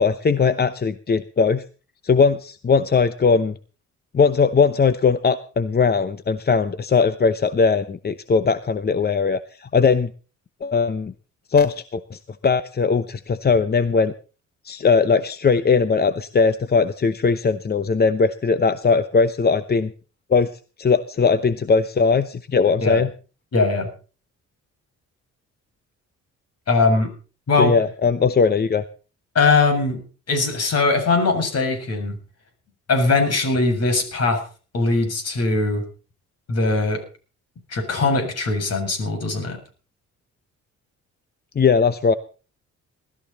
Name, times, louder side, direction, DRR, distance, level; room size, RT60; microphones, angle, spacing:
voice 1, 0.0-1.6 2.0-3.6 4.1-10.1 10.6-11.1 11.5-14.1 14.6-19.9 20.3-20.5 20.8-23.1 27.6-28.8 41.5-42.1, left 5 dB, 30° left, 12 dB, 0.9 m, -19 dB
voice 2, 23.5-23.9 26.7-27.1 27.5-27.7 29.4-30.0 30.3-32.2 32.9-34.4 34.7-35.8 36.5-37.0 37.7-39.6, left 3 dB, 55° left, 5 dB, 7.2 m, -20 dB
20.0 x 13.5 x 4.2 m, 0.37 s
cardioid pair, 90°, 30 cm